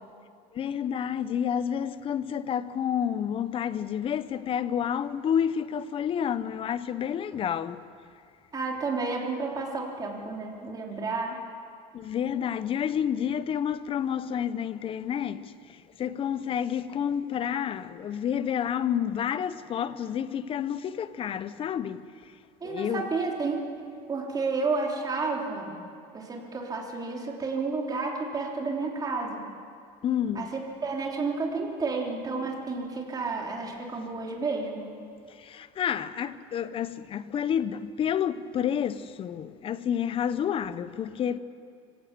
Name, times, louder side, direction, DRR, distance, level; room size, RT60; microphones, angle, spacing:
voice 1, 0.5-7.9 11.9-22.1 22.6-23.1 30.0-30.5 35.4-41.4, left 9 dB, 35° left, 0.8 m, -29 dB
voice 2, 8.5-11.4 22.6-23.6 24.1-25.8 26.1-29.4 30.3-30.5 30.8-34.9, right 3 dB, 25° right, 3.3 m, -31 dB
25.5 x 16.5 x 6.8 m
cardioid pair, 140°, 16 cm